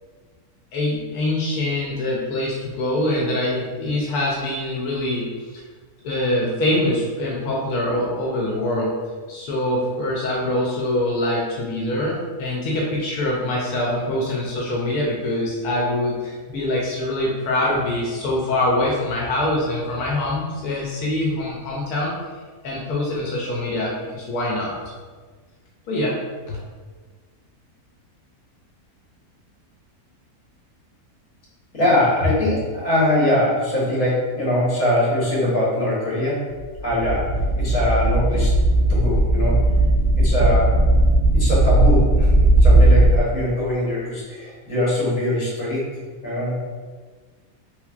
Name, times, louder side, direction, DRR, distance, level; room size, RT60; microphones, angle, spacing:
voice 1, 0.7-5.6 6.0-8.9 9.3-22.1 22.6-24.9 25.9-26.2 26.5-26.6, left 1 dB, 90° left, -3 dB, 1.1 m, -24 dB
voice 2, 31.7-36.5 36.8-38.6 38.9-39.6 40.2-40.8 41.3-42.3 42.6-45.9 46.2-46.6, left 1 dB, 60° left, -7 dB, 1.6 m, -22 dB
sound 1, 36.6-36.7 36.9-43.2, right 1 dB, 90° right, 1.2 m, -16 dB
3.3 x 3.2 x 2.4 m, 1.5 s
omnidirectional pair, 1.6 m